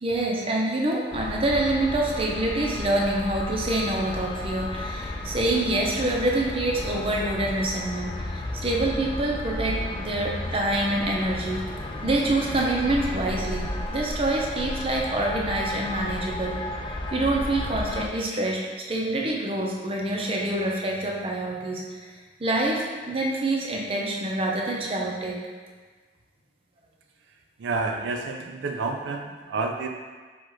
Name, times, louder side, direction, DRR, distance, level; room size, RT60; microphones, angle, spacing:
voice 1, 0.0-11.6 12.0-16.6 17.1-21.8 22.4-25.4, right 2 dB, 30° right, -2 dB, 0.6 m, -26 dB
sound 1, 1.1-18.1, left 1 dB, 30° left, 0.4 m, -33 dB
voice 2, 27.6-29.9, right 3 dB, 90° right, 3 dB, 0.4 m, -29 dB
4.7 x 2.4 x 4.4 m, 1.4 s
head